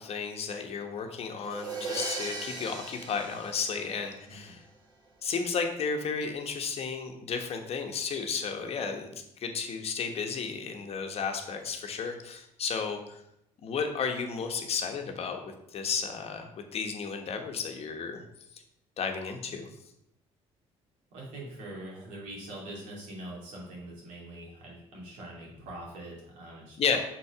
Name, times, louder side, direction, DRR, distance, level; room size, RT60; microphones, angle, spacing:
voice 1, 0.0-4.6 5.2-9.1 9.4-13.2 13.6-18.2 18.5-18.6 19.0-19.7 26.8-27.0, left 5 dB, 55° left, 4 dB, 1.1 m, -33 dB
sound 1, 1.4-4.4, right 3 dB, 35° right, 2.0 m, -38 dB
voice 2, 4.3-4.6 21.1-27.0, right 1 dB, 80° right, -3 dB, 2.6 m, -43 dB
6.1 x 4.4 x 4.8 m, 0.79 s
cardioid pair, 95°, 13 cm